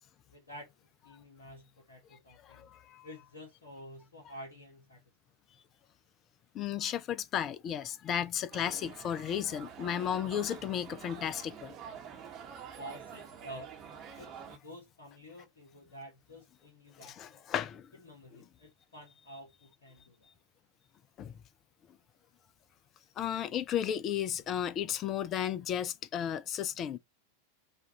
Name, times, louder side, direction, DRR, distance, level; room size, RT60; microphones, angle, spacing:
voice 1, 0.3-0.7 1.0-2.7 3.0-5.0 12.8-13.7 14.1-17.4 18.0-20.3, equal, 70° left, 1.4 m, -50 dB
voice 2, 2.4-3.1 6.5-11.7 17.0-17.9 21.2-21.4 23.2-27.0, left 9 dB, 30° left, 0.5 m, -34 dB
sound 1, 8.5-14.6, right 7 dB, 35° right, 1.0 m, -47 dB
4.3 x 2.4 x 4.2 m
figure-of-eight pair, 90°, 0 cm